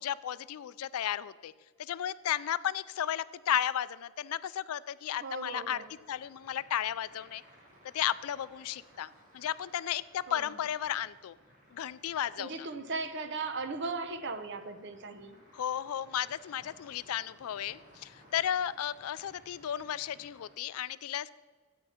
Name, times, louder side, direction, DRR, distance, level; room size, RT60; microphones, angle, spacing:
voice 1, 0.0-1.5 1.8-5.8 6.1-7.4 7.9-9.1 9.3-11.4 11.7-12.7 15.5-21.3, left 10 dB, 80° left, 17 dB, 0.4 m, -34 dB
voice 2, 5.2-5.9 10.3-10.5 12.4-15.4, right 3 dB, 50° right, 9 dB, 0.8 m, -37 dB
sound 1, 5.4-20.5, equal, 35° right, 2.9 m, -60 dB
13.5 x 8.7 x 4.3 m, 1.4 s
head